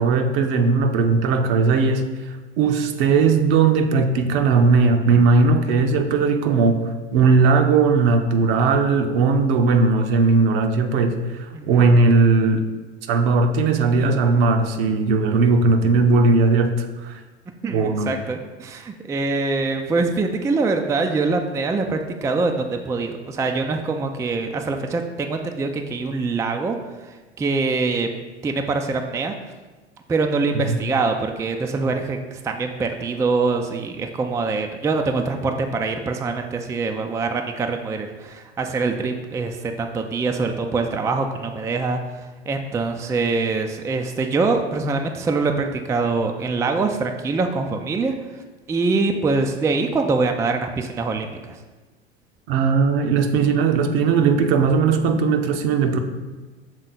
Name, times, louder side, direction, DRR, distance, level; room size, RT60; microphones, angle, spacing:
voice 1, 0.0-2.0 2.6-12.6 13.1-17.2 17.7-18.2 30.5-30.8 52.5-56.0, right 4 dB, 60° right, 6 dB, 0.8 m, -18 dB
voice 2, 17.6-26.8 27.0-29.3 30.1-48.1 48.7-51.6, right 3 dB, 10° right, 4 dB, 0.3 m, -24 dB
6.5 x 3.6 x 4.1 m, 1.2 s
hypercardioid pair, 80°, 32 cm